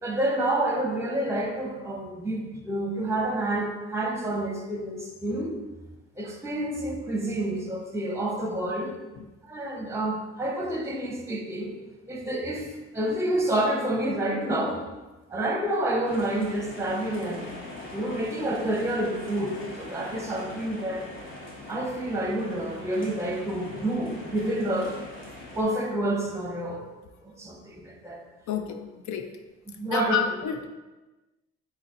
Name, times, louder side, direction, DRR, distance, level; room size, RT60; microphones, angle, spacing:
voice 1, 0.0-5.6 6.2-8.9 9.5-11.7 12.1-12.7 12.9-14.8 15.3-17.5 17.9-21.1 21.7-25.0 25.6-26.9 27.2-28.2 29.7-30.2, right 1 dB, 10° right, 1 dB, 0.7 m, -28 dB
sound 1, 16.0-25.6, left 1 dB, 40° left, 1.1 m, -42 dB
voice 2, 28.5-28.8 29.1-29.3 29.9-30.7, left 7 dB, 70° left, 6 dB, 0.5 m, -29 dB
4.0 x 3.9 x 2.7 m, 1.2 s
cardioid pair, 90°, 30 cm